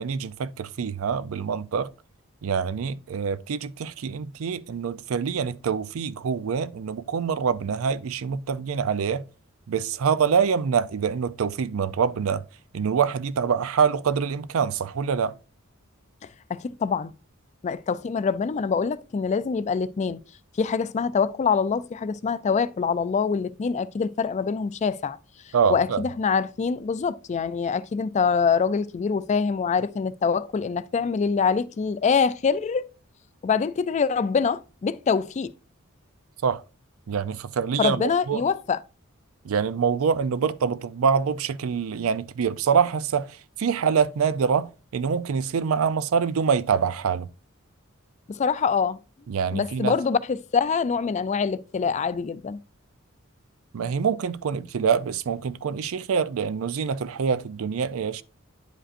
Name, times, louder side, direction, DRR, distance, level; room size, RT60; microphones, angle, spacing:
voice 1, 0.0-1.9 2.4-9.2 9.7-12.4 12.7-15.4 25.5-26.0 36.4-36.6 37.1-38.4 39.4-47.3 49.3-49.9 53.7-58.2, right 6 dB, 75° right, 0.4 m, -25 dB
voice 2, 16.2-17.1 17.6-20.2 20.6-25.2 25.7-32.9 33.4-35.5 37.8-38.8 48.3-49.0 49.5-52.6, left 5 dB, 35° left, 0.3 m, -25 dB
9.8 x 5.1 x 2.5 m
head